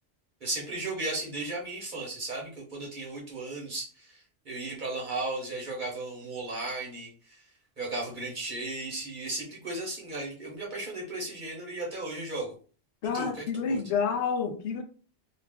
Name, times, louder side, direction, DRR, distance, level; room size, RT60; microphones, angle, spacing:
voice 1, 0.4-4.2 4.4-7.1 7.8-12.5 13.1-13.8, right 2 dB, 45° right, 1.0 m, -35 dB
voice 2, 13.0-14.8, left 6 dB, 70° left, 0.8 m, -29 dB
2.4 x 2.4 x 3.4 m
omnidirectional pair, 1.2 m